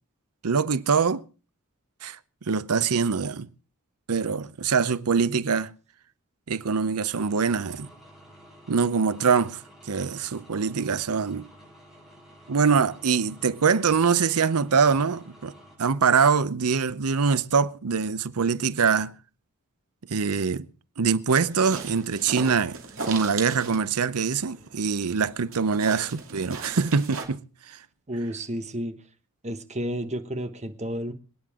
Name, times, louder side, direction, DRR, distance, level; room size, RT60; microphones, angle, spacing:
voice 1, 0.4-1.2 2.0-3.5 4.1-5.7 6.5-7.9 8.7-9.6 9.9-11.5 12.5-15.5 15.8-19.1 20.1-20.7 21.0-22.8 23.1-27.8, right 5 dB, 80° right, 0.7 m, -24 dB
sound 1, 7.1-15.8, equal, ahead, 6.8 m, -51 dB
sound 2, 21.4-27.2, right 4 dB, 60° right, 2.6 m, -38 dB
voice 2, 28.1-29.0 29.4-31.1, equal, 30° right, 1.3 m, -31 dB
26.0 x 9.4 x 3.7 m
head